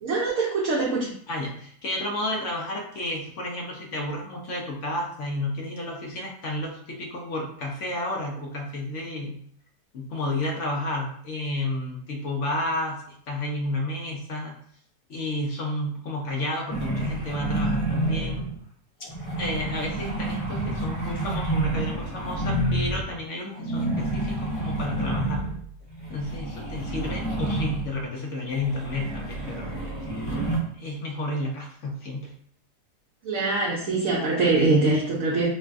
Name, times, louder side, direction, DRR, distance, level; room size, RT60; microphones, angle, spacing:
voice 1, 0.0-1.1 33.2-35.5, right 3 dB, 65° right, -3 dB, 0.9 m, -23 dB
voice 2, 1.3-9.4 9.9-14.6 15.1-18.4 19.4-25.5 26.1-29.7 30.6-32.3, left 1 dB, 60° left, 0 dB, 0.8 m, -31 dB
sound 1, 16.7-18.6 19.0-23.1 23.5-28.1 28.5-30.6, right 2 dB, 35° left, 0.5 m, -29 dB
4.5 x 2.3 x 2.4 m, 0.63 s
omnidirectional pair, 1.7 m